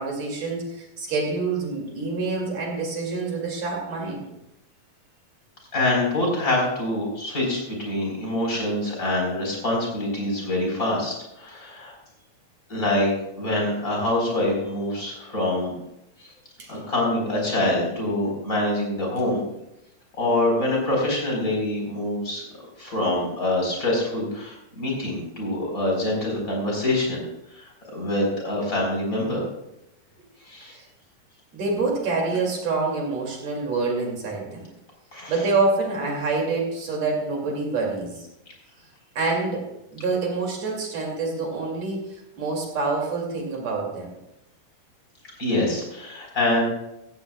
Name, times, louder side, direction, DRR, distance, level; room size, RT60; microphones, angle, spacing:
voice 1, 0.0-4.3 14.0-14.1 16.6-16.7 30.7-30.9 31.5-34.7 35.3-38.3 39.2-44.1, right 3 dB, 50° right, -1 dB, 3.7 m, -27 dB
voice 2, 5.7-11.9 12.7-13.1 13.4-15.8 16.2-16.3 16.7-19.4 20.2-22.4 22.8-27.2 27.5-29.4 30.5-30.7 35.1-35.3 45.4-46.6, left 1 dB, 25° left, -1 dB, 4.5 m, -25 dB
15.5 x 15.5 x 2.3 m, 0.86 s
omnidirectional pair, 3.9 m